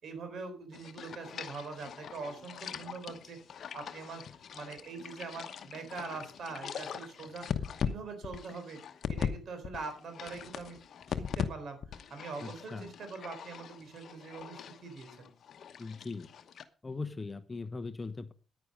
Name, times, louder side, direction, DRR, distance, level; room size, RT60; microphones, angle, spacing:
voice 1, 0.0-4.2 4.5-7.5 7.8-8.8 9.1-10.8 11.1-15.3, right 4 dB, 60° right, 3.9 m, -43 dB
sound 1, 0.7-9.3 9.6-11.5 11.8-16.6, left 7 dB, 60° left, 1.0 m, -40 dB
voice 2, 12.4-12.9 15.8-16.3 16.8-18.3, left 3 dB, 20° left, 0.9 m, -40 dB
10.0 x 9.4 x 5.3 m
cardioid pair, 90°, 0 cm